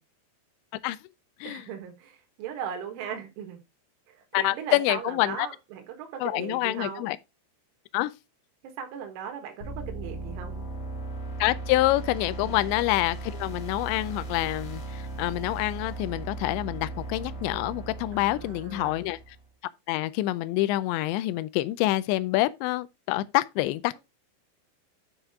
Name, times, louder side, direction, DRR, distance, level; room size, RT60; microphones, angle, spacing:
voice 1, 1.4-3.6 4.1-7.1 8.8-10.7 12.4-12.7 18.1-19.1, right 8 dB, 80° right, 3.9 m, -38 dB
voice 2, 4.3-5.5 6.2-7.2 7.9-8.1 11.4-19.2 19.9-24.0, left 17 dB, 85° left, 2.6 m, -27 dB
sound 1, 9.6-19.4, right 2 dB, 50° left, 2.1 m, -37 dB
10.0 x 5.1 x 3.6 m
omnidirectional pair, 5.6 m